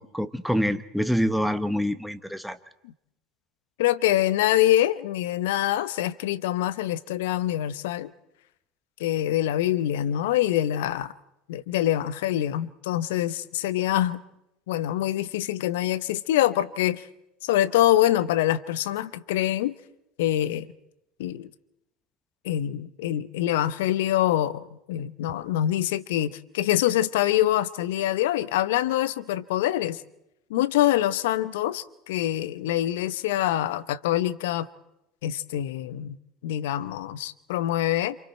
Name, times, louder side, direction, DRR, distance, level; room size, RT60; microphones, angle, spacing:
voice 1, 0.0-2.6, equal, ahead, 1.1 m, -26 dB
voice 2, 3.8-8.1 9.0-11.1 11.5-14.2 14.7-17.1 17.4-19.8 20.2-20.7 21.2-21.5 22.4-30.0 30.5-34.7 35.2-36.2 36.4-38.2, left 13 dB, 70° left, 0.8 m, -25 dB
27.5 x 27.0 x 4.5 m
hypercardioid pair, 70°, 0 cm